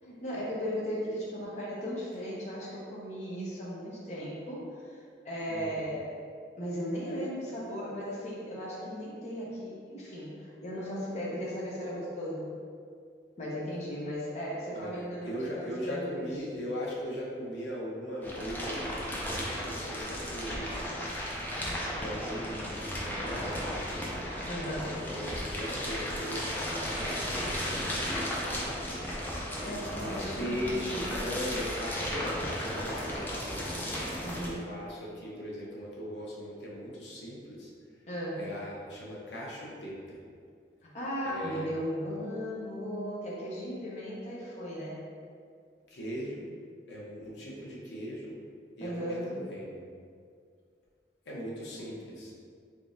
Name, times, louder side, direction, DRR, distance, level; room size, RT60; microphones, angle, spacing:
voice 1, 0.0-5.0 5.2-6.1 6.6-12.5 13.4-16.6 24.5-24.9 29.6-31.1 34.2-34.6 38.1-38.4 40.8-45.0 48.8-49.3, equal, 40° left, -6 dB, 0.8 m, -36 dB
voice 2, 5.5-5.8 14.7-20.9 21.9-23.9 24.8-29.4 30.0-37.7 38.4-40.2 41.2-41.7 45.9-46.5 46.9-48.4 48.8-49.8 51.3-52.4, equal, 90° left, -5 dB, 0.9 m, -39 dB
sound 1, 18.2-34.5, equal, 10° left, 0.5 m, -35 dB
3.7 x 3.5 x 2.7 m, 2.2 s
head